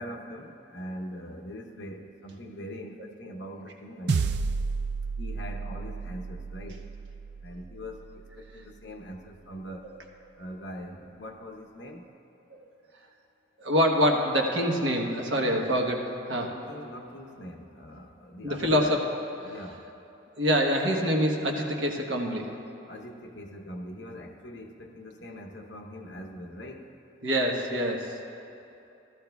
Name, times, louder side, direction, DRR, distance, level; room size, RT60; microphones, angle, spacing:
voice 1, 0.0-4.4 5.2-6.9 7.4-9.9 10.4-12.1 15.4-15.6 16.3-19.0 19.4-19.9 22.9-27.0, equal, 65° left, 2 dB, 0.9 m, -42 dB
sound 1, 4.1-8.7, right 4 dB, 55° right, 0.3 m, -32 dB
voice 2, 13.6-16.5 18.4-19.1 19.4-19.5 20.4-22.5 27.2-28.2, equal, 70° right, 1 dB, 1.2 m, -25 dB
15.0 x 13.5 x 2.3 m, 2.8 s
head